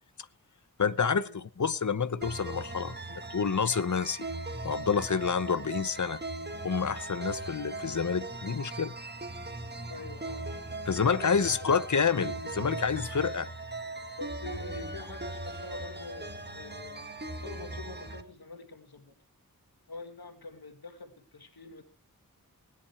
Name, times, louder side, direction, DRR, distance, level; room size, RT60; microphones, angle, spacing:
voice 1, 0.8-4.3 4.6-6.2 6.6-8.9 10.9-13.5, left 6 dB, 55° left, 0.9 m, -28 dB
sound 1, 2.2-18.2, right 2 dB, 30° right, 1.8 m, -39 dB
voice 2, 9.9-10.5 11.2-11.7 14.1-19.1 19.9-21.8, left 3 dB, 90° left, 2.1 m, -45 dB
sound 2, 15.4-17.4, left 1 dB, 35° left, 7.8 m, -61 dB
18.5 x 10.5 x 4.6 m
wide cardioid pair, 70°, 36 cm